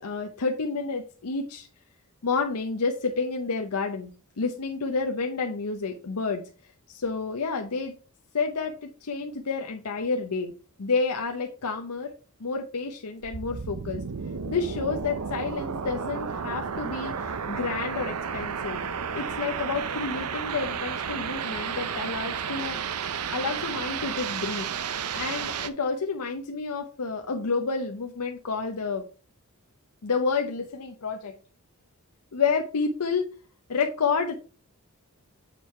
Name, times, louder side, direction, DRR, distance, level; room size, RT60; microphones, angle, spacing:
voice 1, 0.0-1.7 2.2-4.1 4.4-6.4 6.9-7.9 8.3-10.5 10.8-12.1 12.4-14.0 14.5-18.8 19.1-22.8 23.3-24.7 25.1-29.0 30.0-31.3 32.3-33.3 33.7-34.3, left 4 dB, 90° left, 4 dB, 0.7 m, -29 dB
sound 1, 13.2-25.7, right 6 dB, 90° right, 0.7 m, -32 dB
7.6 x 4.7 x 4.4 m, 0.37 s
head